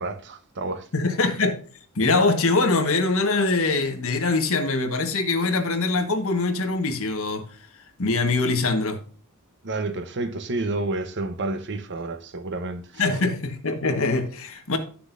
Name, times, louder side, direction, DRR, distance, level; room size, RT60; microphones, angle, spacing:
voice 1, 0.0-0.9 9.6-13.2, right 2 dB, 55° right, 1.0 m, -30 dB
voice 2, 0.9-1.6 1.9-7.4 8.0-9.0 13.0-14.8, left 3 dB, 65° left, 1.5 m, -23 dB
11.5 x 6.8 x 2.6 m
head